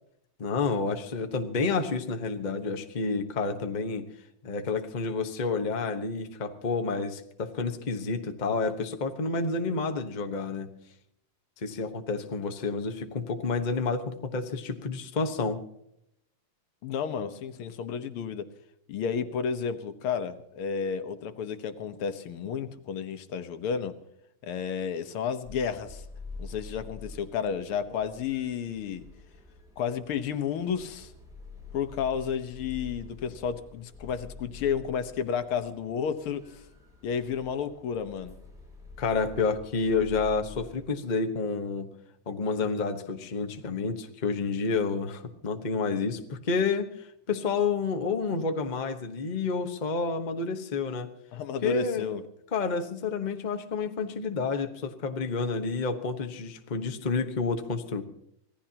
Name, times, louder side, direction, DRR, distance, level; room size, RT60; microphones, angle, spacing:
voice 1, 0.4-4.1 4.4-10.7 11.6-15.6 39.0-41.9 42.3-51.1 51.6-52.1 52.5-58.0, left 4 dB, 30° left, 5 dB, 0.9 m, -29 dB
voice 2, 16.8-18.5 18.9-23.9 24.4-26.0 26.4-29.0 29.8-31.1 31.7-36.6 37.0-38.4 51.3-52.2, left 7 dB, 75° left, 10 dB, 1.9 m, -32 dB
sound 1, 25.4-40.9, left 3 dB, ahead, 6.9 m, -47 dB
26.0 x 18.0 x 2.9 m, 0.75 s
omnidirectional pair, 2.4 m